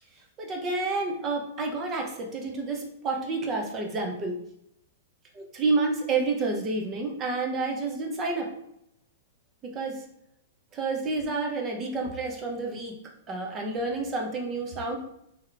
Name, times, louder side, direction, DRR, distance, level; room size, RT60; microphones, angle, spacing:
voice 1, 0.4-4.4 5.3-8.5 9.7-10.0 10.7-13.0 13.3-15.0, right 3 dB, 20° right, 1 dB, 0.7 m, -29 dB
3.3 x 3.0 x 3.8 m, 0.77 s
hypercardioid pair, 150°, 0 cm